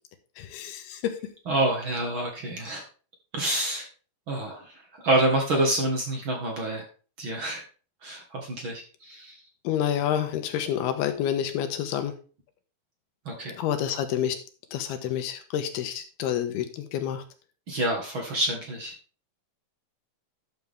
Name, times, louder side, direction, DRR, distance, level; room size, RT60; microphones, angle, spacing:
voice 1, 0.4-1.2 9.6-12.1 13.6-14.4 14.7-17.2, left 10 dB, 85° left, 7 dB, 3.1 m, -28 dB
voice 2, 1.5-2.8 3.3-3.9 4.3-6.8 7.2-7.6 8.0-9.4 13.2-13.6 17.7-18.9, right 1 dB, 45° right, 1 dB, 1.7 m, -27 dB
11.5 x 7.0 x 3.5 m, 0.38 s
omnidirectional pair, 4.4 m